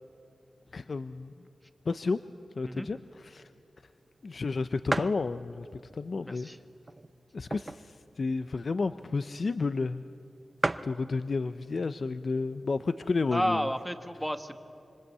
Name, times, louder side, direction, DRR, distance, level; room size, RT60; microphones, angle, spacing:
voice 1, 0.7-1.5 1.9-2.2 2.6-3.5 4.2-6.5 7.3-10.0 10.8-13.7, left 4 dB, 60° left, 12 dB, 0.6 m, -31 dB
sound 1, 3.9-4.0 4.4-4.5 4.9-5.3 5.9-6.0 6.8-8.0 8.3-8.4 8.6-8.9 9.6-9.7 10.0-10.1 10.3-10.4 10.6-11.0 11.9-12.2 12.8-12.9 13.0-13.8, right 2 dB, 30° right, 0.7 m, -33 dB
voice 2, 6.2-6.6 13.3-14.6, equal, ahead, 9 dB, 1.5 m, -31 dB
25.5 x 25.5 x 8.3 m, 2.6 s
wide cardioid pair, 75°, 0 cm